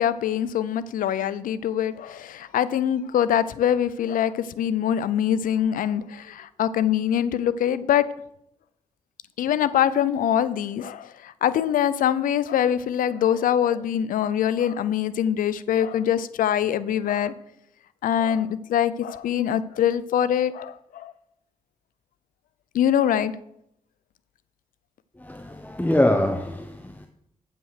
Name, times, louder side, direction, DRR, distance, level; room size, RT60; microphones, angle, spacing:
voice 1, 0.0-8.1 9.4-17.3 18.0-21.1 22.7-23.3, left 10 dB, 90° left, 0.4 m, -24 dB
voice 2, 25.2-27.1, left 1 dB, 10° left, 0.9 m, -24 dB
9.0 x 6.0 x 6.4 m
supercardioid pair, 45°, 14 cm